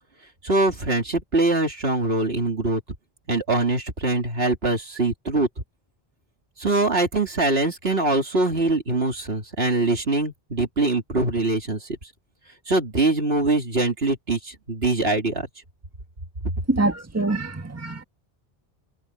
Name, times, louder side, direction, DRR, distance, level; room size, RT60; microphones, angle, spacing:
voice 1, 0.4-2.8 3.3-5.5 6.6-12.0 12.7-15.5, right 2 dB, 75° right, 3.1 m, -23 dB
voice 2, 16.7-18.0, right 2 dB, 15° right, 1.6 m, -24 dB
omnidirectional pair, 1.0 m